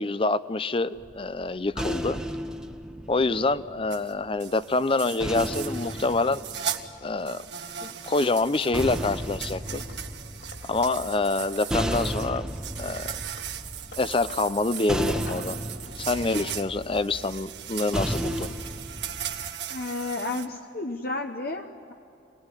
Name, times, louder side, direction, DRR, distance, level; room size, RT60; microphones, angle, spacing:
voice 1, 0.0-2.2 3.1-6.4 7.0-7.4 7.8-9.8 10.6-12.4 12.8-13.1 14.0-15.6 16.0-18.5, left 3 dB, 30° left, 15 dB, 0.7 m, -26 dB
sound 1, 1.0-4.3 5.2-7.5 8.4-19.5, equal, 5° right, 1.3 m, -34 dB
sound 2, 3.9-4.1 4.4-6.8 7.2-20.5, right 9 dB, 70° right, 1.7 m, -38 dB
Wood, 8.0-10.7 11.0-12.0 12.3-15.6 15.9-16.6, left 2 dB, 75° left, 4.4 m, -51 dB
voice 2, 19.7-21.9, left 2 dB, 55° left, 4 dB, 1.1 m, -32 dB
25.5 x 19.5 x 9.9 m, 2.7 s
head